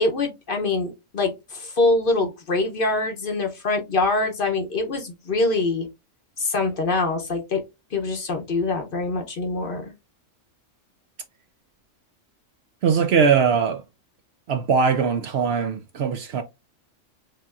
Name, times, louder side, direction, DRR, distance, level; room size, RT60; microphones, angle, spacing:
voice 1, 0.0-5.9 6.4-7.6 7.9-9.9, left 3 dB, 50° left, 0.8 m, -24 dB
voice 2, 12.8-13.8 14.5-16.4, right 6 dB, 65° right, 0.7 m, -21 dB
6.5 x 2.8 x 2.4 m
omnidirectional pair, 1.4 m